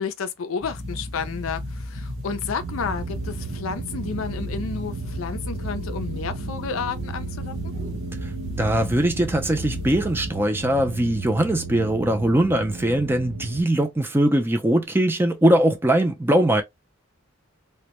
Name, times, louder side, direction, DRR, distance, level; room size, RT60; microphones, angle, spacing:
voice 1, 0.0-7.7, left 5 dB, 75° left, 0.4 m, -31 dB
sound 1, 0.6-10.3, left 1 dB, 60° right, 0.8 m, -34 dB
sound 2, 2.6-13.6, right 4 dB, 85° right, 0.4 m, -35 dB
voice 2, 8.6-16.6, right 1 dB, 10° right, 0.4 m, -21 dB
2.2 x 2.1 x 2.8 m
head